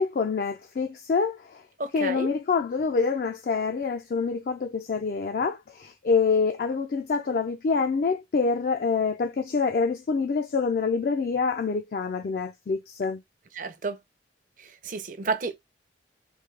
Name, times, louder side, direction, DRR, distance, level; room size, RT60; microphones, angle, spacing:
voice 1, 0.0-1.6 1.9-13.2, left 5 dB, 50° left, 0.3 m, -26 dB
voice 2, 1.8-2.3 13.5-14.0 14.6-15.6, right 4 dB, 45° right, 0.6 m, -31 dB
3.6 x 2.7 x 3.2 m
head